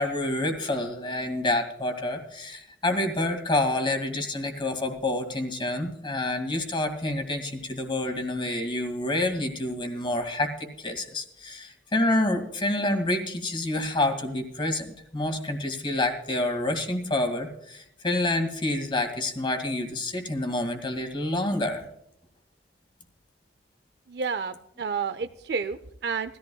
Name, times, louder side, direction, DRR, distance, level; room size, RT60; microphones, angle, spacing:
voice 1, 0.0-21.9, left 1 dB, 30° left, 5 dB, 2.2 m, -28 dB
voice 2, 24.1-26.4, right 5 dB, 65° right, 10 dB, 0.6 m, -30 dB
19.0 x 14.5 x 2.3 m, 0.77 s
head